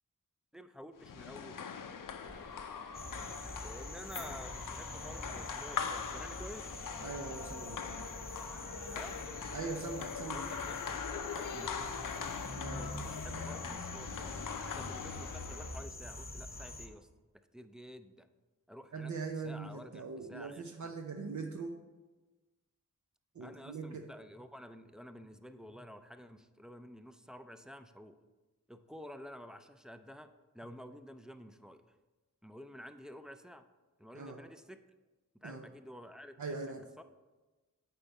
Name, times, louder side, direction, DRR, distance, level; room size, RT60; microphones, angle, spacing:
voice 1, 0.5-1.7 3.6-6.7 8.9-9.2 10.2-12.0 12.7-14.3 14.6-17.1 17.5-18.3 18.7-19.1 19.4-20.9 23.4-28.2 28.7-31.8 32.4-33.6 34.0-34.8 35.4-36.6 37.0-37.1, equal, ahead, 8 dB, 0.4 m, -51 dB
sound 1, 1.0-15.8, left 6 dB, 75° left, 0.5 m, -42 dB
sound 2, 2.2-9.7, left 1 dB, 30° right, 2.6 m, -56 dB
sound 3, 2.9-16.9, left 2 dB, 30° left, 0.9 m, -45 dB
voice 2, 7.0-8.1 9.5-10.4 12.6-13.0 18.9-21.8 23.3-24.1 34.1-34.4 35.4-35.6 36.4-36.8, right 4 dB, 60° right, 3 dB, 0.6 m, -41 dB
8.7 x 4.6 x 4.1 m, 1.2 s
wide cardioid pair, 65°, 32 cm